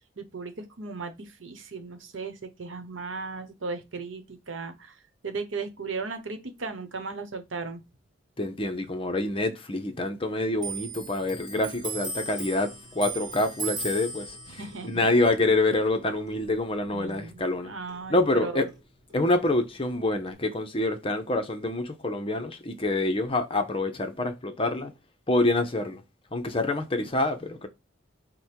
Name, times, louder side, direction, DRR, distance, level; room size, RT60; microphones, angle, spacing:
voice 1, 0.2-1.1 1.4-4.9 5.2-7.8 14.5-15.1 16.9-17.3 17.6-18.7, right 4 dB, 80° right, 1.0 m, -36 dB
voice 2, 8.4-14.4 14.8-17.7 18.1-18.7 19.1-24.9 25.3-26.0 26.3-27.7, left 2 dB, 30° left, 0.7 m, -26 dB
Clock, 10.6-17.6 17.9-19.2 19.5-20.3, right 4 dB, 20° right, 1.4 m, -38 dB
5.1 x 2.2 x 4.4 m
head